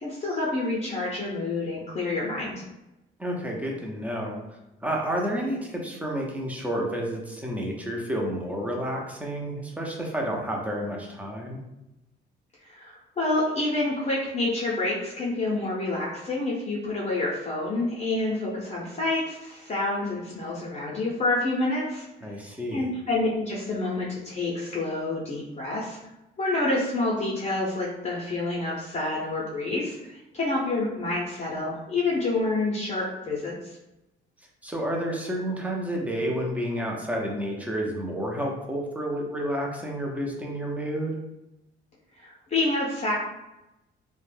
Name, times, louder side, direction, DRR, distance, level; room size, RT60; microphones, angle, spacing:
voice 1, 0.0-2.6 12.7-22.1 22.7-26.0 26.4-33.8 42.2-43.2, left 2 dB, 35° left, -6 dB, 0.7 m, -28 dB
voice 2, 3.2-4.4 4.8-11.6 22.2-22.9 34.6-41.2, equal, 5° right, -1 dB, 0.6 m, -30 dB
2.3 x 2.2 x 3.3 m, 0.94 s
cardioid pair, 90°, 20 cm